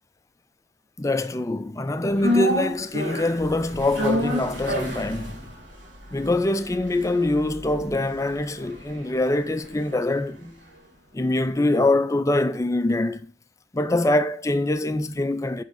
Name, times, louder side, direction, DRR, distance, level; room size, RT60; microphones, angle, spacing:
voice 1, 1.0-5.4 6.1-10.5 11.1-13.3 13.7-15.6, left 1 dB, 15° left, 0.4 m, -24 dB
sound 1, 2.2-10.5 10.8-10.9, left 1 dB, 65° right, 1.8 m, -30 dB
9.2 x 3.5 x 6.5 m
head